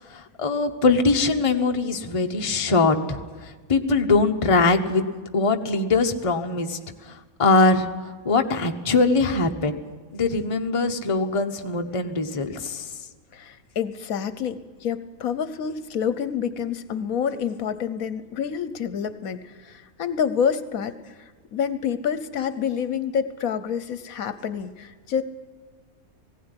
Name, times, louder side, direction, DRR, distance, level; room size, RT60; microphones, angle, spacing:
voice 1, 0.1-5.0 5.3-9.8 10.1-12.9, left 3 dB, 25° left, 5 dB, 1.0 m, -22 dB
voice 2, 13.3-25.2, left 7 dB, 70° left, 13 dB, 1.2 m, -28 dB
19.0 x 16.5 x 9.8 m, 1.4 s
omnidirectional pair, 1.5 m